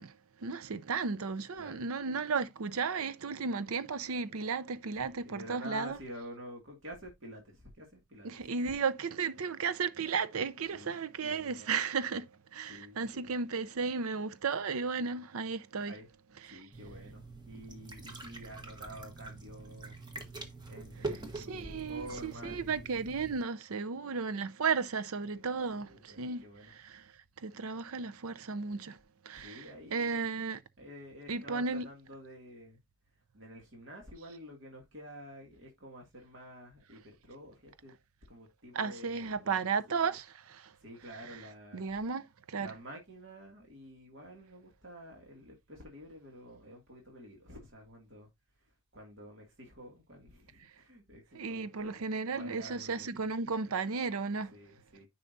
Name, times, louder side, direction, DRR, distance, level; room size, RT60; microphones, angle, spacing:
voice 1, 0.0-6.0 8.2-15.9 16.5-16.7 21.3-27.1 27.4-29.0 29.2-29.7 29.9-30.6 31.3-31.9 38.7-40.7 41.7-42.7 51.3-54.5, right 5 dB, 80° right, 0.6 m, -34 dB
voice 2, 5.0-8.3 8.6-8.7 10.7-11.7 12.7-13.3 15.8-20.0 20.7-22.8 25.3-25.4 25.7-26.7 29.3-30.2 30.8-32.8 33.3-37.9 38.3-39.6 39.9-40.2 40.8-41.9 42.6-48.3 48.9-52.0 52.3-53.2 54.5-55.1, equal, 55° right, 2.3 m, -49 dB
sound 1, 16.7-23.4, right 3 dB, 20° right, 1.2 m, -44 dB
10.0 x 5.6 x 2.6 m
head